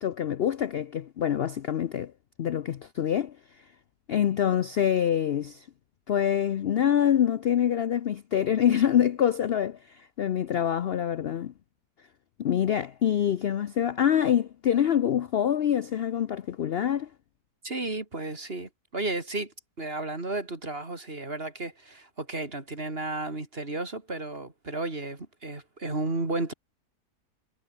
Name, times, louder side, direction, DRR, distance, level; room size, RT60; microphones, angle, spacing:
voice 1, 0.0-2.1 2.4-3.4 4.1-5.7 6.1-11.5 12.4-17.1, left 9 dB, 70° left, 0.5 m, -25 dB
voice 2, 17.6-26.5, right 2 dB, 35° right, 3.6 m, -33 dB
omnidirectional pair, 1.8 m